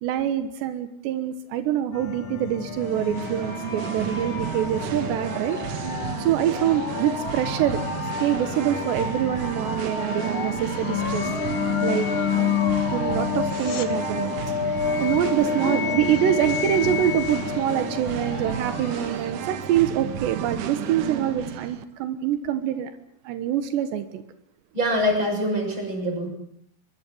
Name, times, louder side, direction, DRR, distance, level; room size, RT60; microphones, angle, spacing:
voice 1, 0.0-5.6 6.2-7.8 8.2-11.3 11.8-12.1 12.9-14.4 14.7-22.9 23.3-24.2, right 10 dB, 85° right, 9 dB, 3.5 m, -25 dB
sound 1, 1.9-19.4, left 7 dB, 50° left, 1.6 m, -29 dB
Singing, 2.7-21.8, right 9 dB, 60° right, 2.4 m, -32 dB
sound 2, 13.3-13.9 25.3-25.4, left 8 dB, 70° left, 3.9 m, -39 dB
voice 2, 15.5-15.9 18.6-18.7 24.7-26.3, equal, 25° right, 3 dB, 7.5 m, -25 dB
24.0 x 23.0 x 7.9 m, 0.68 s
omnidirectional pair, 4.8 m